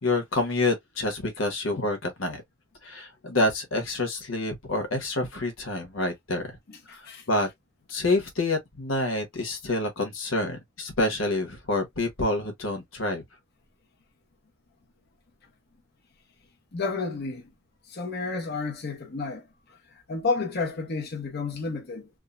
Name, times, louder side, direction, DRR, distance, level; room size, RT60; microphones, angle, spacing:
voice 1, 0.0-2.4 2.8-6.5 7.3-7.5 7.9-13.2, left 2 dB, 90° left, 1.2 m, -27 dB
voice 2, 6.7-7.2 16.7-17.4 17.9-19.5 20.1-22.1, left 3 dB, 55° left, 0.9 m, -31 dB
3.6 x 2.2 x 2.4 m
head